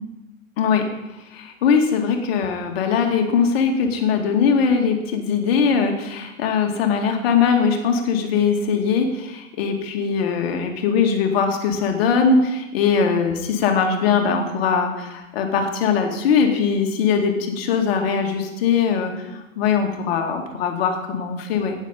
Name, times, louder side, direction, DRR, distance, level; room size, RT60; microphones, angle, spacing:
voice 1, 1.3-21.7, left 6 dB, 45° left, 3 dB, 2.3 m, -21 dB
12.5 x 9.4 x 5.3 m, 0.98 s
figure-of-eight pair, 105°, 41 cm